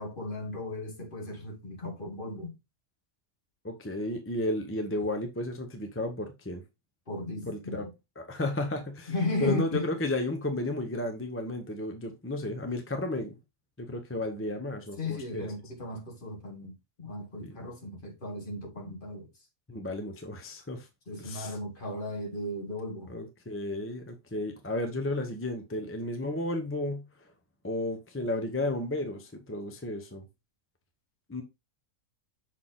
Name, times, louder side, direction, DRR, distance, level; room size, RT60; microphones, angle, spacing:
voice 1, 0.0-2.6 7.1-7.9 9.1-9.9 15.0-19.3 21.1-23.1, left 2 dB, 40° left, 1.5 m, -36 dB
voice 2, 3.6-6.6 7.5-7.8 8.2-9.1 9.4-13.4 13.8-15.5 17.4-17.6 19.7-20.9 21.2-21.5 23.1-27.0 27.6-30.3 31.3-31.4, left 1 dB, 10° left, 0.7 m, -33 dB
6.4 x 4.1 x 3.7 m
omnidirectional pair, 1.5 m